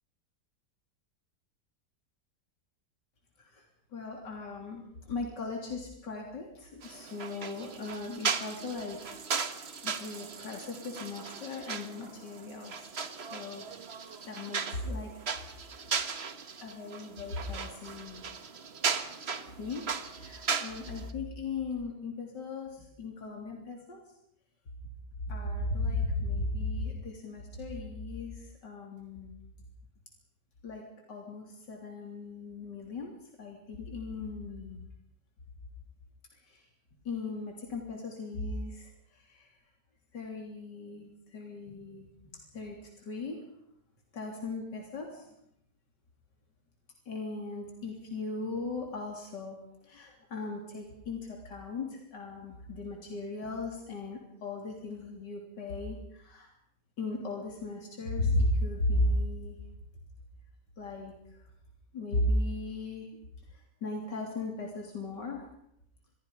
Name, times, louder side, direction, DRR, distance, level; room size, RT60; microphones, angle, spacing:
voice 1, 3.9-9.6 9.8-13.7 14.3-15.1 15.5-15.8 16.6-18.3 19.6-24.0 25.2-29.4 30.6-34.8 36.3-36.7 37.1-39.5 40.1-43.4 44.1-45.3 47.1-56.5 57.0-59.6 60.8-61.5 61.9-63.1 63.5-65.5, left 2 dB, 85° left, 1 dB, 3.9 m, -36 dB
sound 1, 6.8-21.1, right 5 dB, 40° right, 1.4 m, -37 dB
26.5 x 22.5 x 5.3 m, 0.73 s
omnidirectional pair, 1.8 m